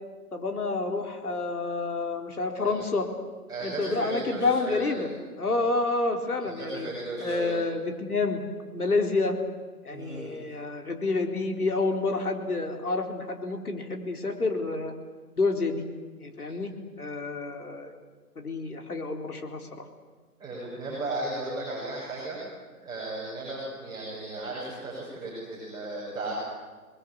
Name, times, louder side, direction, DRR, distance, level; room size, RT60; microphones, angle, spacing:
voice 1, 0.3-3.1 3.6-5.1 5.4-6.9 7.2-8.4 8.7-9.4 9.8-14.9 15.4-15.8 16.2-16.7 17.0-17.9 18.4-19.7, left 3 dB, 70° left, 4 dB, 4.0 m, -28 dB
voice 2, 2.6-3.0 3.5-5.1 5.5-5.6 6.4-7.5 9.9-10.3 20.4-22.4 22.7-26.3, right 2 dB, 10° right, -9 dB, 6.2 m, -35 dB
28.0 x 21.0 x 8.5 m, 1.4 s
figure-of-eight pair, 145°, 46 cm